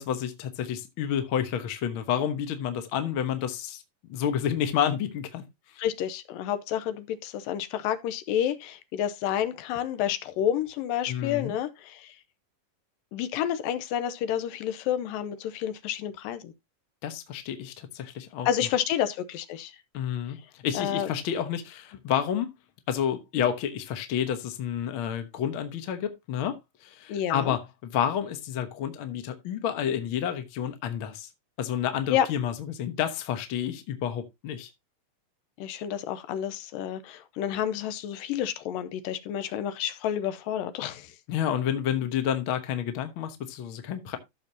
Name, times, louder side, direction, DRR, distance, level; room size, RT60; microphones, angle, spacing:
voice 1, 0.0-3.8 4.1-5.4 11.1-11.5 17.0-18.5 19.9-22.5 22.9-31.3 31.6-34.7 41.3-44.2, left 9 dB, 60° left, 1.3 m, -30 dB
voice 2, 5.8-12.1 13.1-16.5 18.5-19.7 20.7-21.1 27.1-27.6 32.1-32.3 35.6-41.1, left 10 dB, 85° left, 2.4 m, -29 dB
14.0 x 6.6 x 2.8 m
omnidirectional pair, 4.0 m